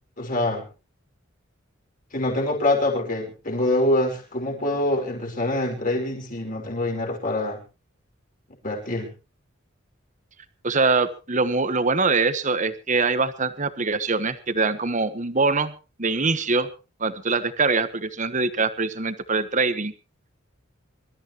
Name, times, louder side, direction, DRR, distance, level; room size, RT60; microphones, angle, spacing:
voice 1, 0.2-0.7 2.1-7.6 8.6-9.1, left 1 dB, 40° left, 1 dB, 5.5 m, -25 dB
voice 2, 10.6-15.7 16.0-16.7 17.0-19.9, right 4 dB, 40° right, 12 dB, 1.3 m, -23 dB
25.5 x 13.5 x 3.0 m, 0.32 s
head